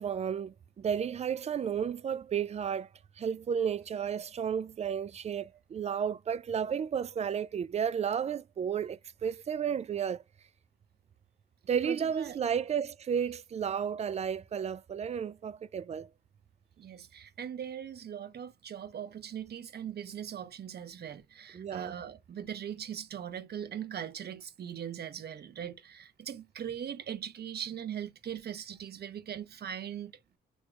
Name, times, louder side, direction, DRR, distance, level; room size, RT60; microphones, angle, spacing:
voice 1, 0.0-2.9 3.2-10.2 11.7-16.1 21.5-22.0, right 8 dB, 35° right, 0.3 m, -32 dB
voice 2, 11.7-12.4 16.8-30.1, right 9 dB, 55° right, 1.0 m, -40 dB
6.2 x 3.1 x 2.3 m
cardioid pair, 90°, 20 cm